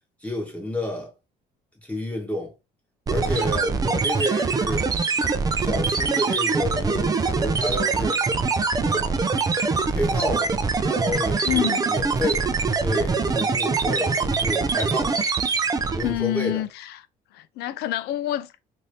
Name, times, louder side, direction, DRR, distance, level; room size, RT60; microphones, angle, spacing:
voice 1, 0.2-1.1 1.8-2.5 3.1-4.9 5.5-8.2 8.8-9.2 9.9-10.6 10.8-12.4 12.8-15.2 16.0-16.6, left 1 dB, 10° left, 1.1 m, -30 dB
sound 1, 3.1-16.2, right 4 dB, 20° right, 0.4 m, -23 dB
voice 2, 11.5-11.8 16.0-17.1 17.3-18.5, left 14 dB, 75° left, 0.4 m, -27 dB
2.7 x 2.6 x 3.2 m
cardioid pair, 110°, 17 cm